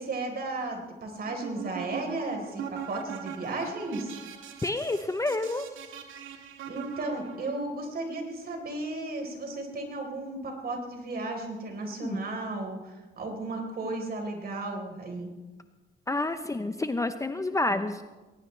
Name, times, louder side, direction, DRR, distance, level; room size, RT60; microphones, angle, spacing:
voice 1, 0.0-4.2 6.7-15.3, right 2 dB, 50° right, 3 dB, 4.1 m, -34 dB
sound 1, 1.3-7.6, right 8 dB, 85° right, 1.8 m, -41 dB
voice 2, 4.6-5.7 12.0-12.2 16.1-18.0, left 2 dB, 15° left, 9 dB, 0.8 m, -29 dB
20.5 x 18.5 x 3.3 m, 1.2 s
cardioid pair, 90°, 20 cm